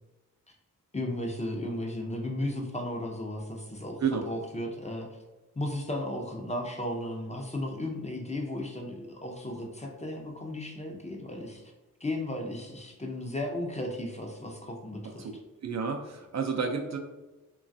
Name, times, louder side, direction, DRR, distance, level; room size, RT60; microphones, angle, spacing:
voice 1, 0.9-5.1 5.6-11.7 12.0-15.3, left 1 dB, 20° left, 1 dB, 0.5 m, -35 dB
voice 2, 15.6-17.0, right 5 dB, 55° right, 3 dB, 0.4 m, -30 dB
3.0 x 2.3 x 2.6 m, 1.1 s
cardioid pair, 65°, 33 cm